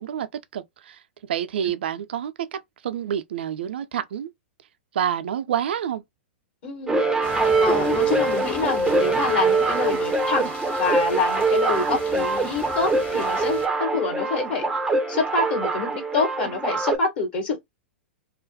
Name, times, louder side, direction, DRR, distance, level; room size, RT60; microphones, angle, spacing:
voice 1, 0.0-4.3 4.9-6.0, right 9 dB, 65° right, 0.4 m, -28 dB
voice 2, 6.6-7.0 7.6-10.5 10.8-14.7 15.1-17.6, left 3 dB, 55° left, 1.2 m, -26 dB
wah-sat feedback, 6.9-17.0, right 3 dB, 10° right, 0.5 m, -23 dB
sound 1, 7.2-13.7, left 3 dB, 25° left, 0.8 m, -41 dB
2.4 x 2.1 x 2.5 m
figure-of-eight pair, 105°, 6 cm